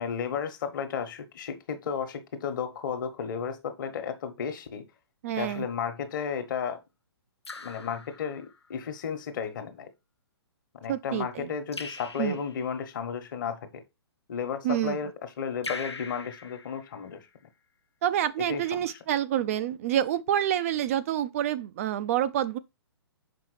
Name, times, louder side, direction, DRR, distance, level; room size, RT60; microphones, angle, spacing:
voice 1, 0.0-4.8 5.4-6.8 7.6-9.9 10.8-13.8 14.3-17.3 18.5-18.9, left 6 dB, 50° left, 1.2 m, -33 dB
voice 2, 5.2-5.7 10.9-11.5 12.2-12.4 14.6-15.0 18.0-22.6, right 11 dB, 35° right, 0.4 m, -27 dB
Raindrop / Drip, 5.7-6.1 7.4-8.8 11.7-12.8 15.6-17.4, left 3 dB, 85° left, 0.9 m, -42 dB
6.0 x 5.1 x 3.2 m
figure-of-eight pair, 125°, 14 cm